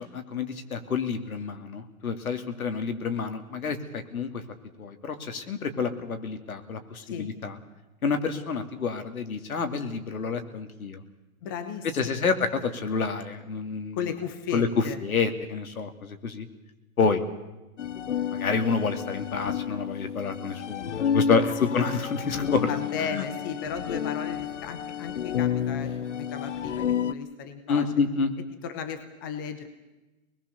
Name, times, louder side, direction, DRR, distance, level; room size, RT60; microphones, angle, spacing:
voice 1, 0.0-4.4 4.8-7.6 8.0-11.0 11.9-14.0 14.5-14.7 15.0-16.5 17.0-17.2 18.3-22.7 23.1-23.2 27.7-28.3, left 5 dB, 80° left, 7 dB, 2.8 m, -28 dB
voice 2, 11.4-12.3 13.9-15.0 21.6-21.7 22.7-27.9 28.6-29.7, left 7 dB, 15° left, 8 dB, 0.8 m, -35 dB
sound 1, 17.8-27.1, left 8 dB, 60° left, 0.9 m, -30 dB
24.5 x 20.5 x 6.9 m, 1.1 s
hypercardioid pair, 170°, 42 cm